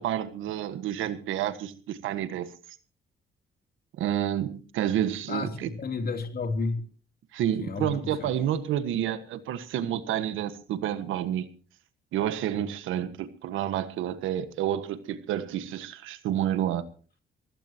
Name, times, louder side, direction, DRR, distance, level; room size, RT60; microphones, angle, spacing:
voice 1, 0.0-2.5 4.0-5.7 7.3-11.5 12.1-16.8, right 11 dB, 90° right, 1.5 m, -29 dB
voice 2, 5.3-6.9 7.6-8.3, left 4 dB, 50° left, 3.1 m, -32 dB
24.0 x 16.0 x 2.9 m
cardioid pair, 90°, 20 cm